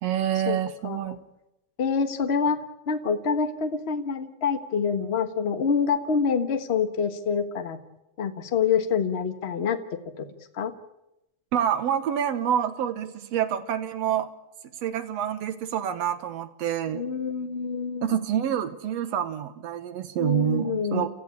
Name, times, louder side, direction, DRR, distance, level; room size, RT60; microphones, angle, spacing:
voice 1, 0.0-1.2 11.5-14.3 14.8-17.0 18.0-21.1, right 10 dB, 65° right, 10 dB, 2.2 m, -27 dB
voice 2, 0.8-1.2 1.8-2.6 2.9-7.8 8.2-10.3 10.5-10.7 16.9-18.1 20.2-21.1, left 6 dB, 45° left, 8 dB, 0.8 m, -26 dB
30.0 x 14.5 x 8.5 m, 0.90 s
omnidirectional pair, 3.5 m